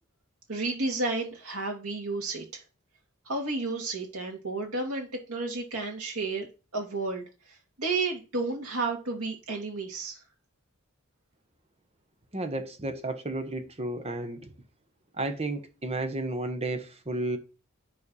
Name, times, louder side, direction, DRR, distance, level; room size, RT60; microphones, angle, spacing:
voice 1, 0.5-2.6 3.3-7.2 7.8-10.2, right 3 dB, 85° right, 2.2 m, -32 dB
voice 2, 12.3-14.5 15.2-17.4, right 2 dB, 30° right, 1.1 m, -32 dB
9.6 x 3.4 x 5.5 m
head